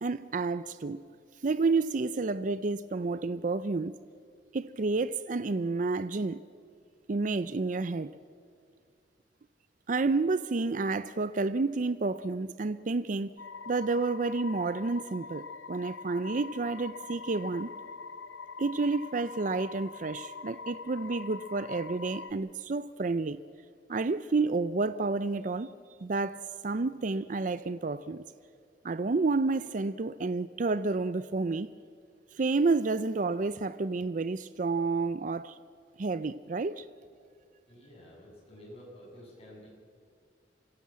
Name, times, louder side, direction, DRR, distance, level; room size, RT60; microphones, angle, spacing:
voice 1, 0.0-1.0 1.4-3.9 4.5-6.4 7.1-8.1 9.9-13.4 13.7-17.7 18.6-23.4 23.9-25.7 26.0-28.2 28.8-31.7 32.3-35.6 36.0-36.9, right 3 dB, 45° right, 0.5 m, -30 dB
sound 1, 13.4-22.3, left 4 dB, 90° left, 0.7 m, -43 dB
voice 2, 37.7-39.7, equal, 35° left, 7.4 m, -50 dB
25.5 x 16.5 x 7.5 m
head